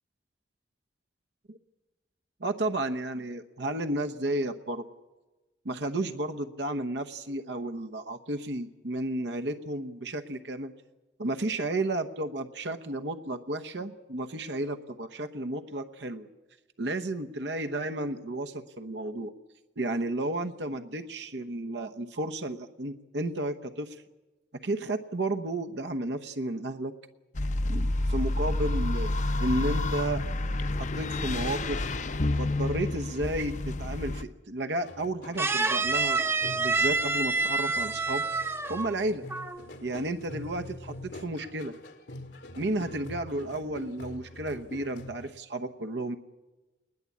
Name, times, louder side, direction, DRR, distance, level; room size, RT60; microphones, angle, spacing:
voice 1, 2.4-4.8 5.6-10.7 11.2-16.3 16.8-19.3 19.8-24.0 24.6-26.9 27.7-30.2 30.8-31.9 32.4-36.2 36.6-39.3 39.8-41.8 42.6-46.2, right 1 dB, 75° right, 7 dB, 1.0 m, -32 dB
sound 1, 27.3-34.2, left 2 dB, 40° left, 0.7 m, -29 dB
sound 2, 34.8-45.3, left 1 dB, 85° left, 1.9 m, -45 dB
sound 3, 35.4-39.0 39.3-39.6, right 3 dB, 15° right, 0.7 m, -28 dB
20.5 x 20.5 x 8.5 m, 1.1 s
head